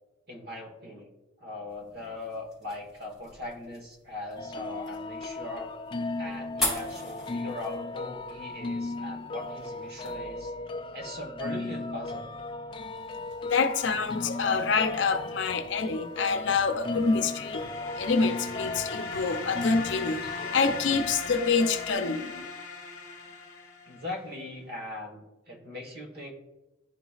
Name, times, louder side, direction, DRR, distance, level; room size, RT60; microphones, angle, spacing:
voice 1, 0.3-1.1 1.4-5.7 6.2-10.5 10.9-12.3 13.2-14.2 23.9-26.3, left 2 dB, 55° right, 1.4 m, -40 dB
sound 1, 1.7-10.1, left 2 dB, ahead, 1.9 m, -40 dB
sound 2, 4.4-21.9, left 2 dB, 25° left, 0.3 m, -36 dB
voice 2, 13.5-22.5, left 4 dB, 75° left, 0.6 m, -27 dB
sound 3, 16.6-24.3, left 4 dB, 40° left, 0.8 m, -40 dB
11.0 x 4.0 x 2.4 m
head